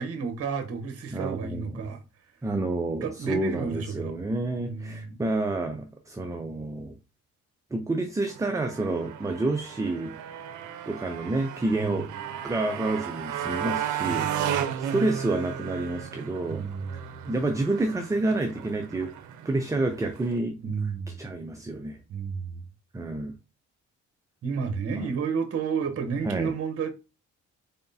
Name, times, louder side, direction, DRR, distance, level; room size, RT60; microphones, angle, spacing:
voice 1, 0.0-2.0 3.0-4.2 4.6-5.2 11.8-12.2 14.0-14.7 16.5-17.1 20.6-21.2 22.1-22.6 24.4-26.9, right 6 dB, 50° right, 0.9 m, -32 dB
voice 2, 1.1-1.9 2.4-6.9 7.7-10.1 10.9-12.1 12.4-14.2 14.8-16.6 17.2-19.1 19.4-20.7 21.1-22.0 22.9-23.3 26.2-26.5, right 2 dB, 10° right, 0.4 m, -29 dB
Motorcycle, 8.3-20.4, right 9 dB, 75° right, 0.6 m, -34 dB
4.0 x 3.4 x 2.7 m
cardioid pair, 90°, 30 cm